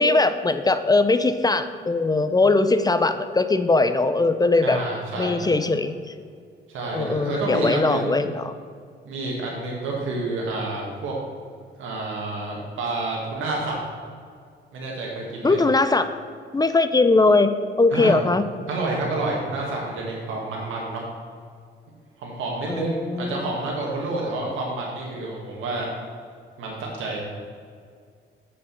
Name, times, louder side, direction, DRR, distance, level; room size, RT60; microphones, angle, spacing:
voice 1, 0.0-4.8 5.2-5.9 6.9-8.5 15.4-16.1 16.5-17.5 17.8-18.4 22.7-23.5, left 3 dB, 20° left, 10 dB, 0.5 m, -20 dB
voice 2, 4.6-5.5 6.7-8.2 9.1-11.1 11.8-13.8 14.7-15.6 17.9-18.2 18.7-21.0 22.2-25.9 26.6-27.2, right 2 dB, 85° right, -2 dB, 1.8 m, -29 dB
8.1 x 5.4 x 6.8 m, 2.1 s
cardioid pair, 90°, 20 cm